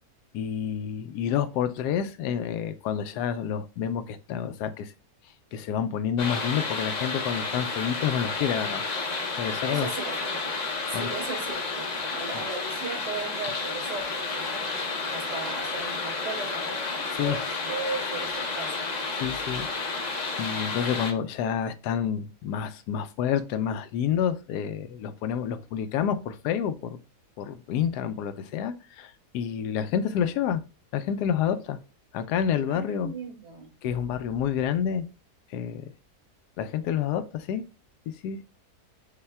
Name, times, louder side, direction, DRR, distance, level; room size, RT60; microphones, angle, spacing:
voice 1, 0.3-4.9 5.5-8.8 9.4-9.9 10.9-11.1 17.1-17.4 19.2-19.7 20.0-27.0 27.4-30.6 30.9-31.8 32.1-33.1 33.8-35.0 35.5-35.9 36.6-37.6 38.2-38.4, left 8 dB, 80° left, 1.1 m, -29 dB
sound 1, 6.2-21.1, left 4 dB, 55° left, 0.4 m, -31 dB
voice 2, 9.7-10.4 10.9-18.9 32.7-33.7, right 4 dB, 80° right, 1.9 m, -37 dB
5.4 x 2.2 x 3.3 m
omnidirectional pair, 1.7 m